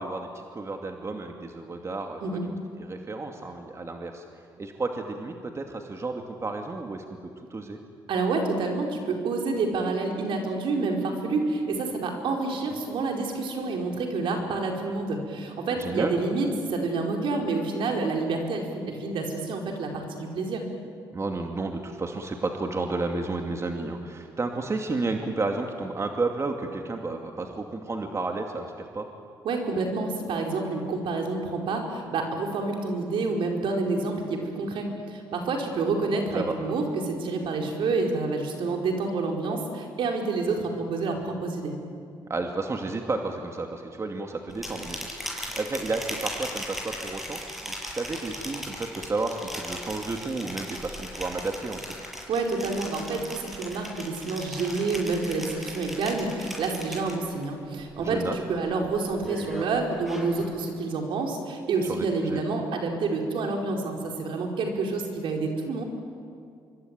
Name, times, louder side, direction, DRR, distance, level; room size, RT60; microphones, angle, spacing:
voice 1, 0.0-2.2 2.5-4.2 4.6-7.8 15.8-16.1 21.1-29.1 36.3-36.7 42.3-51.8 58.0-58.4 61.9-62.4, right 3 dB, 35° right, 3 dB, 2.5 m, -32 dB
voice 2, 8.1-20.7 29.4-41.7 52.3-65.8, right 3 dB, 70° right, 1 dB, 4.8 m, -28 dB
sound 1, 44.5-57.4 57.8-58.2 58.6-60.5, equal, ahead, 7.7 m, -38 dB
25.5 x 23.5 x 9.2 m, 2.3 s
supercardioid pair, 70°, 9 cm